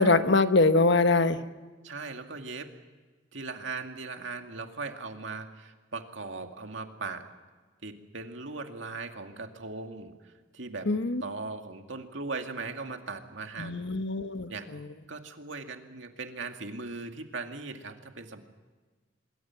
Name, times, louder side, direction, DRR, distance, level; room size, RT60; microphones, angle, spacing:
voice 1, 0.0-1.4 10.9-11.2 13.6-14.8, left 3 dB, 65° left, 10 dB, 1.2 m, -23 dB
voice 2, 1.8-2.7 3.3-7.2 7.8-10.9 11.2-13.9 14.5-14.7 15.1-18.4, right 3 dB, 75° right, 5 dB, 2.3 m, -39 dB
25.0 x 23.0 x 5.9 m, 1.4 s
head